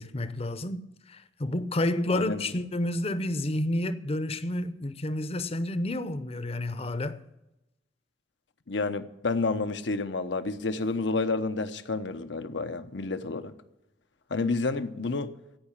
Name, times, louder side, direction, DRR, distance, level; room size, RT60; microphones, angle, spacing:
voice 1, 0.0-7.2, left 1 dB, 35° left, 0.7 m, -30 dB
voice 2, 2.1-2.4 8.7-13.5 14.3-15.3, left 3 dB, 80° left, 0.9 m, -30 dB
16.0 x 5.8 x 9.8 m
head